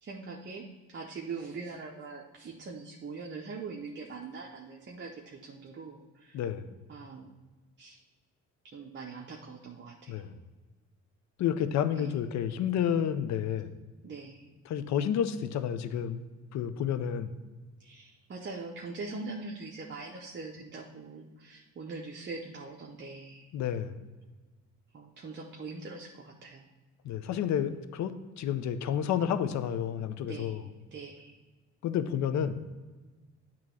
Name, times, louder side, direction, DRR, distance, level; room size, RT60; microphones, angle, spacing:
voice 1, 0.0-6.4 6.9-7.3 7.8-8.0 8.6-10.3 11.9-12.1 14.0-14.5 17.8-23.5 24.9-26.7 30.2-30.6 30.9-31.4, right 4 dB, 40° right, 0 dB, 0.8 m, -42 dB
voice 2, 6.3-6.7 10.1-10.4 11.4-13.7 14.6-16.2 16.5-17.4 23.5-23.9 27.0-30.6 31.8-32.7, left 9 dB, 65° left, 11 dB, 0.6 m, -30 dB
8.4 x 3.0 x 6.0 m, 1.3 s
cardioid pair, 90°, 30 cm